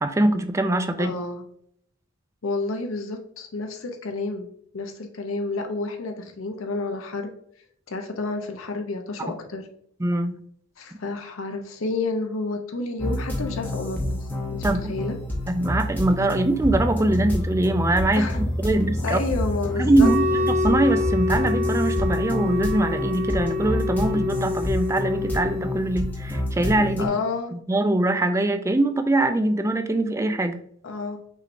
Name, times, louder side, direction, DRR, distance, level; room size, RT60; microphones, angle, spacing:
voice 1, 0.0-1.1 10.0-10.4 14.6-14.9 15.5-18.3 18.6-19.2 19.8-27.2 27.5-30.6, right 2 dB, 15° right, 8 dB, 0.3 m, -22 dB
voice 2, 1.0-1.4 2.4-4.5 4.7-7.3 7.9-9.6 10.8-15.1 18.2-18.4 19.0-20.1 27.0-27.5 30.8-31.2, left 3 dB, 85° left, 3 dB, 0.6 m, -30 dB
sound 1, 13.0-27.1, left 1 dB, 10° left, 0.7 m, -28 dB
Wind instrument woodwind instrument, 20.0-25.8, left 3 dB, 35° right, 1.6 m, -27 dB
5.6 x 3.2 x 2.6 m, 0.67 s
head